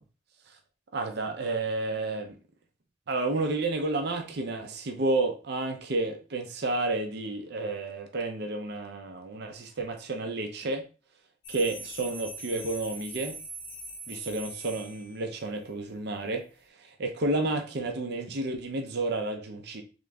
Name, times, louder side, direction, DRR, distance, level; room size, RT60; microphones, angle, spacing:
voice 1, 0.9-2.4 3.1-10.8 11.5-13.4 14.1-16.4 17.0-19.8, right 2 dB, 65° right, 0.6 m, -31 dB
sound 1, 11.4-15.5, right 2 dB, 80° left, 0.7 m, -42 dB
3.6 x 3.0 x 3.3 m
head